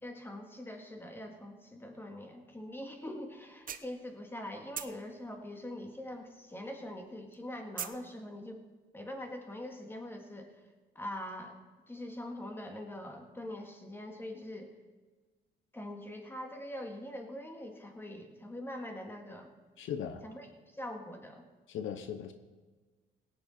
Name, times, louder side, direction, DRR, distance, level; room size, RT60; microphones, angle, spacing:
voice 1, 0.0-8.6 8.9-10.5 11.0-11.6 11.9-14.7 15.7-19.5 20.2-20.5 20.7-21.4, left 1 dB, 10° left, 4 dB, 2.0 m, -43 dB
sound 1, 2.9-3.0 3.4-4.4 4.7-6.6 6.8-8.1, right 8 dB, 45° right, 0.7 m, -42 dB
voice 2, 19.8-20.2 21.7-22.3, left 8 dB, 80° left, 8 dB, 0.9 m, -38 dB
17.5 x 9.3 x 4.4 m, 1.3 s
cardioid pair, 90°, 20 cm